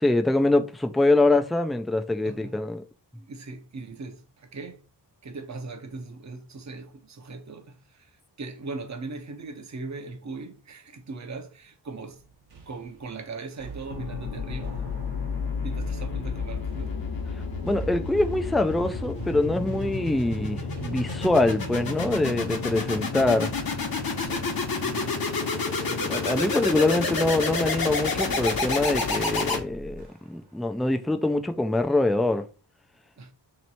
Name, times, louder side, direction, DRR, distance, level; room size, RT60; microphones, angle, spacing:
voice 1, 0.0-2.8 17.6-23.5 25.9-32.4, left 2 dB, ahead, 0.3 m, -24 dB
voice 2, 2.2-2.6 3.2-4.8 5.2-12.2 12.7-14.8 15.6-17.0 22.6-22.8 24.2-24.5 24.8-25.2 33.2-33.3, right 3 dB, 40° right, 0.8 m, -39 dB
sound 1, 12.1-28.6 29.1-29.4 30.0-30.5, right 5 dB, 60° right, 1.1 m, -46 dB
sound 2, 13.9-30.0, left 4 dB, 55° left, 1.0 m, -30 dB
3.1 x 3.1 x 4.1 m
wide cardioid pair, 95°, 43 cm